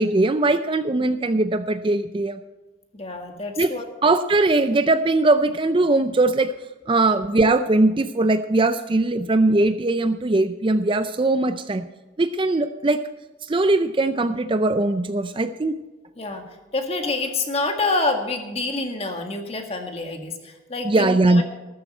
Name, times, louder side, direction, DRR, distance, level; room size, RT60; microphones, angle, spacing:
voice 1, 0.0-2.4 3.6-3.7 4.0-6.5 6.9-11.9 12.2-13.0 13.4-15.8 20.8-21.4, right 2 dB, 25° right, 10 dB, 0.4 m, -20 dB
voice 2, 2.9-3.9 16.2-16.4 16.7-21.4, left 3 dB, 30° left, 4 dB, 1.8 m, -27 dB
14.5 x 13.0 x 4.4 m, 1.2 s
head